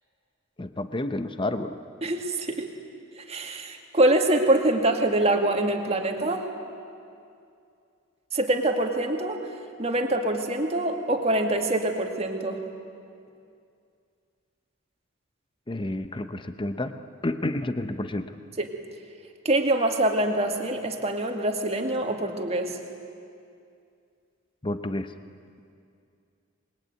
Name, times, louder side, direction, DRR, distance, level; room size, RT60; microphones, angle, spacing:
voice 1, 0.6-1.8 15.7-16.9 17.2-18.3 24.6-25.1, left 1 dB, 25° left, 9 dB, 0.8 m, -30 dB
voice 2, 2.0-2.7 3.2-6.5 8.3-9.4 9.8-12.6 18.6-18.7 19.4-22.8, right 1 dB, 30° right, 4 dB, 2.2 m, -25 dB
26.0 x 21.5 x 9.4 m, 2.4 s
head